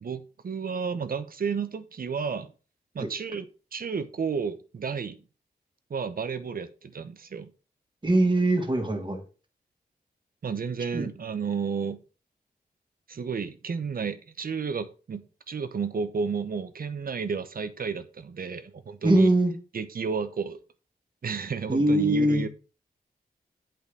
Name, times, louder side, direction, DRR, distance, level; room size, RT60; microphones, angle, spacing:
voice 1, 0.0-2.5 2.9-3.5 3.7-5.2 5.9-7.5 10.4-12.0 13.1-19.3 19.7-20.6 21.2-22.5, right 5 dB, 65° right, 1.0 m, -32 dB
voice 2, 8.0-9.2 10.9-11.1 19.0-19.5 21.7-22.4, right 1 dB, 30° right, 2.2 m, -22 dB
8.3 x 5.2 x 5.3 m
cardioid pair, 75°, 16 cm